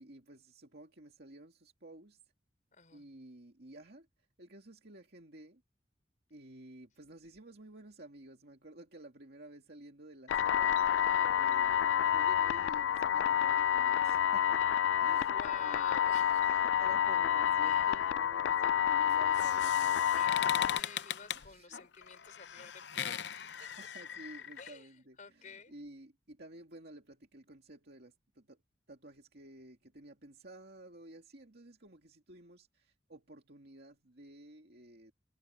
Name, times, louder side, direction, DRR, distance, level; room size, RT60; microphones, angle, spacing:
voice 1, 0.0-2.2 2.9-4.1 4.4-5.6 6.3-10.7 11.3-14.7 15.0-16.0 16.5-20.1 20.5-20.9 21.3-21.9 23.6-28.6 28.9-35.1, right 1 dB, 60° right, 2.4 m, -53 dB
voice 2, 2.7-3.1 15.1-16.5 17.6-17.9 20.1-23.3 24.6-25.7, left 5 dB, 45° left, 4.2 m, -51 dB
sound 1, 10.3-20.8, left 9 dB, 90° left, 0.3 m, -29 dB
sound 2, 19.1-24.7, left 9 dB, 70° left, 0.7 m, -40 dB
head